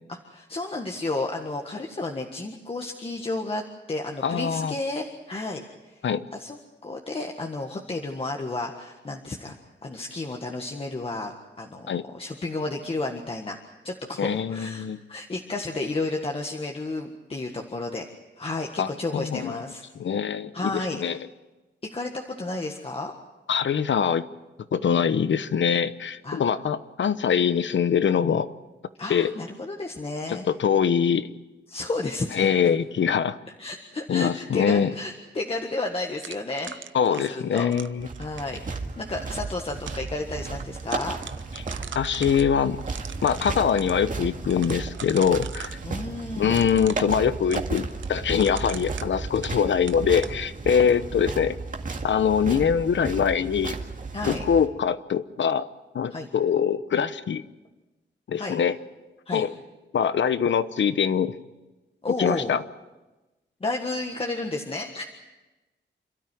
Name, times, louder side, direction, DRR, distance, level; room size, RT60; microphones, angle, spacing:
voice 1, 0.1-6.0 6.3-9.6 9.8-13.6 13.8-18.1 18.4-19.8 20.5-21.0 21.9-23.1 26.2-26.4 29.0-30.5 31.7-32.4 32.6-32.8 33.6-36.8 37.1-37.7 38.2-41.1 45.8-46.8 54.1-54.4 56.1-56.3 58.4-58.6 59.3-59.4 62.0-62.5 63.6-65.0, left 2 dB, 30° left, 1 dB, 1.6 m, -32 dB
voice 2, 4.2-4.7 6.0-6.2 11.9-12.0 14.2-15.0 18.8-19.5 20.0-21.2 23.5-24.2 24.7-28.5 29.1-29.3 30.3-31.3 32.3-33.4 34.1-34.9 36.9-38.1 41.9-42.8 43.2-45.8 46.4-51.6 52.0-53.7 54.3-55.6 55.9-57.4 58.3-58.7 59.3-59.5 59.9-61.4 62.2-62.6, left 7 dB, 75° left, 13 dB, 1.0 m, -23 dB
sound 1, 36.2-38.6 39.4-40.1 40.5-40.6 40.8-42.4 42.8-43.9 44.5-45.8 46.5-49.6 49.9-50.4, right 8 dB, 85° right, 0.8 m, -41 dB
sound 2, 38.0-54.7, right 4 dB, 45° right, 2.1 m, -34 dB
28.5 x 13.0 x 9.3 m, 1.1 s
wide cardioid pair, 140°, 19 cm